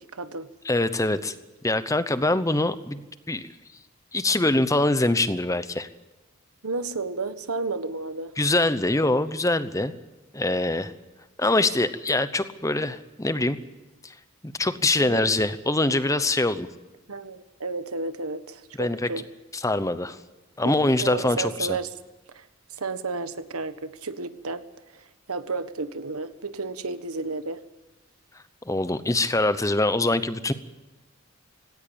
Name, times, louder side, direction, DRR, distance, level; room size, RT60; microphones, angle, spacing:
voice 1, 0.0-0.5 6.6-8.3 15.0-15.4 17.1-19.3 20.6-21.9 22.3-27.6, right 3 dB, 85° right, 11 dB, 1.4 m, -32 dB
voice 2, 0.6-1.3 1.6-3.5 4.1-5.9 8.4-9.9 10.3-10.9 11.4-13.6 14.0-14.1 14.4-16.7 18.8-19.1 19.6-20.2 20.6-21.8 28.7-30.5, left 2 dB, 15° left, 12 dB, 0.8 m, -24 dB
18.5 x 17.5 x 8.8 m, 1.1 s
head